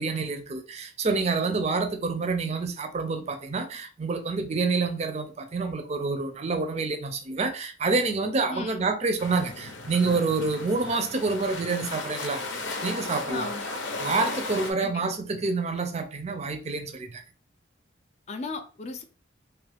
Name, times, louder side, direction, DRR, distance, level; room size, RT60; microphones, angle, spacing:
voice 1, 0.0-12.4 12.8-13.5 14.0-17.2, right 3 dB, 35° right, 0.5 m, -28 dB
voice 2, 8.5-8.9 13.3-13.6 14.8-15.0 18.3-19.0, left 3 dB, 35° left, 0.4 m, -35 dB
sound 1, 9.2-14.7, left 2 dB, 80° left, 0.7 m, -35 dB
2.9 x 2.4 x 3.3 m
head